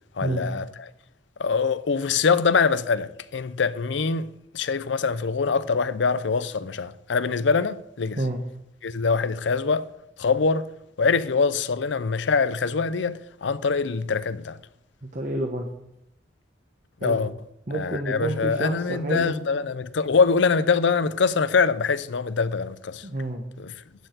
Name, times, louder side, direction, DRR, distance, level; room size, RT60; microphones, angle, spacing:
voice 1, 0.2-0.9 1.4-4.3 4.5-8.2 8.8-9.9 10.2-10.7 11.0-14.6 17.0-17.3 17.7-23.0 23.6-23.7, left 5 dB, 75° left, 0.6 m, -24 dB
voice 2, 15.0-15.7 17.0-17.2 17.7-19.3 23.0-23.4, right 1 dB, 45° right, 1.1 m, -29 dB
11.0 x 4.6 x 8.0 m
head